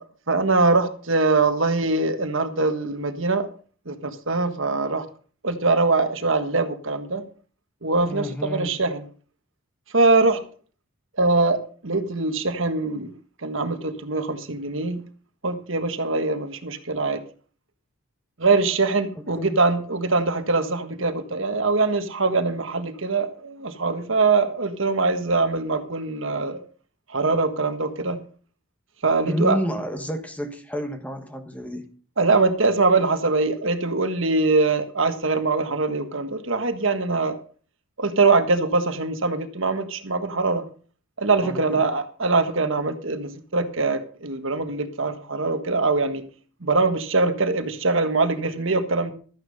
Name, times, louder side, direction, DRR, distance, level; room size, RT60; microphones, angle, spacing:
voice 1, 0.3-3.5 3.9-5.0 5.4-7.2 7.8-9.0 9.9-10.4 11.2-13.1 13.4-15.0 15.4-17.2 18.4-26.6 27.1-28.2 29.0-29.6 32.2-37.4 38.0-40.6 41.2-46.2 46.6-49.1, right 3 dB, 70° right, 8 dB, 1.5 m, -22 dB
voice 2, 8.0-8.8 19.4-19.6 29.2-31.9 41.4-41.9, equal, 5° left, 7 dB, 1.3 m, -30 dB
13.5 x 9.7 x 5.3 m, 0.41 s
head